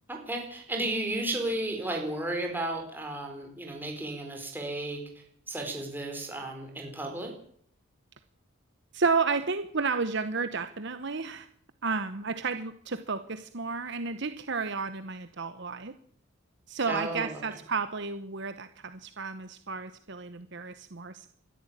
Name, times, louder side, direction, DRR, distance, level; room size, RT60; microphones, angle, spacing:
voice 1, 0.1-5.0 5.5-7.3 16.9-17.4, right 1 dB, 10° right, 1 dB, 4.5 m, -33 dB
voice 2, 8.9-11.5 11.8-15.9 16.7-21.3, right 4 dB, 55° right, 11 dB, 0.9 m, -32 dB
22.5 x 13.5 x 8.8 m, 0.63 s
head